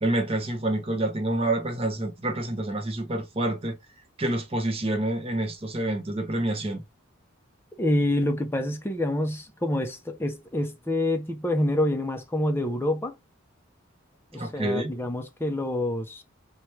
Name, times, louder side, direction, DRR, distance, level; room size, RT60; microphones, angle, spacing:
voice 1, 0.0-3.8 4.2-6.8 14.4-14.9, right 1 dB, 25° right, 0.6 m, -27 dB
voice 2, 7.8-13.1 14.3-16.2, left 1 dB, 10° left, 0.5 m, -27 dB
4.3 x 2.2 x 3.1 m
head